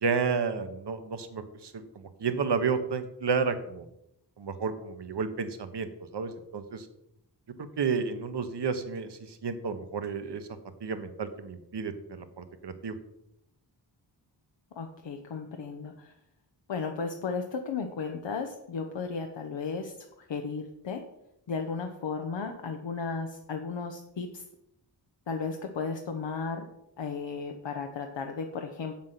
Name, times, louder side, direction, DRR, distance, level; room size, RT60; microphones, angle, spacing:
voice 1, 0.0-3.9 4.4-6.9 7.8-10.5 10.8-12.9, right 5 dB, 65° right, 9 dB, 1.2 m, -31 dB
voice 2, 14.7-16.1 16.7-19.9 20.3-21.0 21.5-24.4 25.3-26.7 27.0-28.9, left 5 dB, 85° left, 4 dB, 1.0 m, -34 dB
7.9 x 7.3 x 5.7 m, 0.81 s
wide cardioid pair, 95°, 43 cm